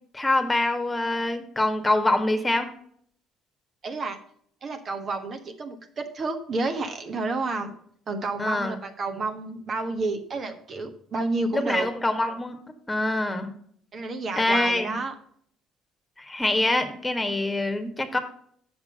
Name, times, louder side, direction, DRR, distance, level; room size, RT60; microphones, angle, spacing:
voice 1, 0.1-2.7 8.4-8.8 11.5-12.6 12.9-13.5 14.4-14.9 16.2-18.2, left 2 dB, 15° left, 6 dB, 1.5 m, -25 dB
voice 2, 3.8-4.2 4.6-7.7 8.1-11.9 13.9-15.1, right 3 dB, 45° right, 6 dB, 1.3 m, -30 dB
7.1 x 6.0 x 6.6 m, 0.63 s
hypercardioid pair, 65°, 0 cm